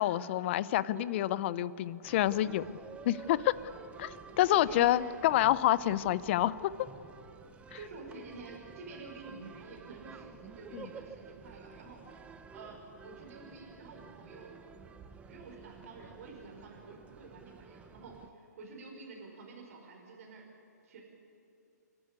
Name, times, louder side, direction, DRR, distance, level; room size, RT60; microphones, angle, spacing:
voice 1, 0.0-2.6 3.1-3.5 4.0-6.5 10.7-10.9, left 14 dB, 40° left, 18 dB, 0.6 m, -28 dB
sound 1, 2.0-18.3, right 6 dB, 15° right, 0.9 m, -51 dB
voice 2, 4.3-5.0 7.7-12.0 12.5-14.5 15.3-20.5 20.8-21.0, right 4 dB, 50° right, -1 dB, 5.0 m, -49 dB
28.5 x 12.0 x 9.7 m, 2.7 s
hypercardioid pair, 140°, 10 cm